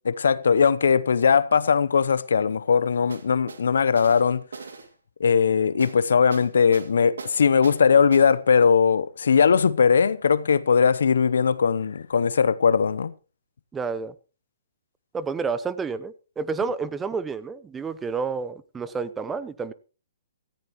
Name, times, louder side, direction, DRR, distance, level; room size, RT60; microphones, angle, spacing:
voice 1, 0.0-4.4 5.2-13.1, left 6 dB, 70° left, 0.8 m, -20 dB
sound 1, 3.1-3.6 4.0-4.9 5.8-6.0 6.3-6.9 7.2-7.8 8.1-8.3 8.6-8.7, right 4 dB, 80° right, 2.1 m, -38 dB
voice 2, 13.7-14.1 15.1-19.7, right 5 dB, 10° right, 0.8 m, -30 dB
17.0 x 14.5 x 3.1 m
hypercardioid pair, 135°, 0 cm